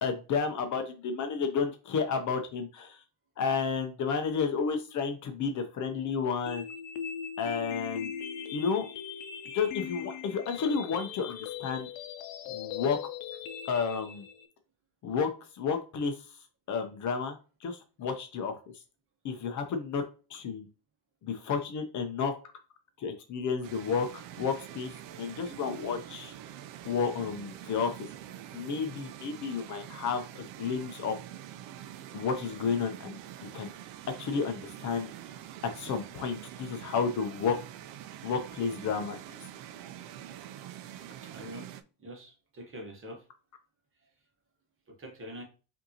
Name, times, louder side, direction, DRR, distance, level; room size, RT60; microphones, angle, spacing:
voice 1, 0.0-3.0 3.4-6.6 7.4-8.1 8.5-8.9 9.5-11.9 12.5-13.0 13.7-14.3 15.0-16.3 16.7-18.6 19.2-20.0 20.3-20.7 21.2-22.3 23.0-24.1 24.4-26.3 26.8-27.9 28.5-31.2 32.1-33.7 34.2-35.1 35.7-37.6 38.2-39.2, left 5 dB, 45° left, 7 dB, 0.6 m, -31 dB
sound 1, 6.5-14.5, left 8 dB, 80° left, 0.7 m, -40 dB
sound 2, 23.6-41.8, right 11 dB, 85° right, 0.5 m, -45 dB
voice 2, 41.2-41.7 42.0-43.2 44.9-45.4, equal, 30° right, 1 dB, 1.0 m, -44 dB
5.1 x 2.7 x 2.7 m, 0.34 s
cardioid pair, 145°, 43 cm